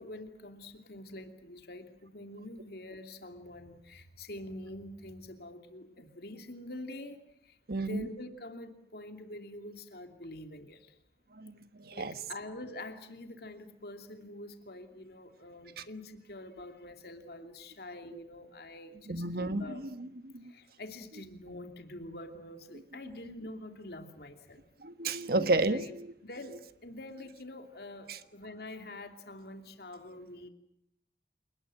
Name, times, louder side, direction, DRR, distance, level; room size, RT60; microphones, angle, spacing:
voice 1, 0.0-10.9 11.9-19.3 19.6-19.8 20.4-24.6 25.2-25.3 25.6-25.9 26.2-30.5, left 1 dB, 60° left, 6 dB, 2.9 m, -46 dB
voice 2, 7.7-8.0 11.4-11.5 11.8-12.1 19.1-20.5 24.8-25.8 28.1-28.2, right 2 dB, 60° right, 11 dB, 1.5 m, -31 dB
28.5 x 20.0 x 7.8 m, 0.75 s
head